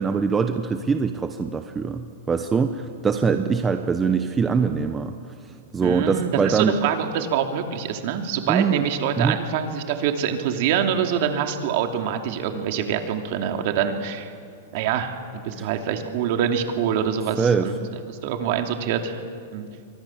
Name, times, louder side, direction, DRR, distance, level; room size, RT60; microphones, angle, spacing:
voice 1, 0.0-5.1 5.7-6.7 8.5-8.8 9.2-9.4 15.6-15.7 17.4-17.7, right 5 dB, 15° right, 7 dB, 1.0 m, -23 dB
voice 2, 5.8-14.3 14.7-17.8 18.1-19.2 19.5-19.7, right 8 dB, 55° right, 5 dB, 2.8 m, -25 dB
29.0 x 24.5 x 7.4 m, 2.3 s
supercardioid pair, 150°, 0 cm